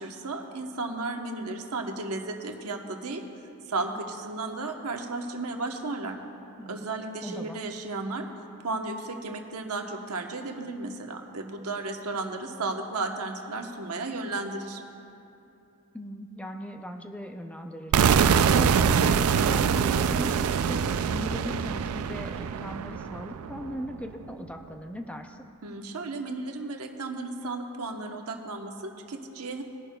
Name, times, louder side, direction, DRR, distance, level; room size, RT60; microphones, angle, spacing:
voice 1, 0.0-3.2 3.7-6.2 6.7-8.3 8.6-14.8 25.6-29.6, right 3 dB, 90° right, 3 dB, 1.0 m, -34 dB
voice 2, 7.2-7.6 15.9-25.4, equal, 5° left, 4 dB, 0.5 m, -39 dB
sound 1, 17.9-23.8, right 7 dB, 70° right, 0.3 m, -24 dB
19.5 x 11.0 x 2.3 m, 2.7 s
head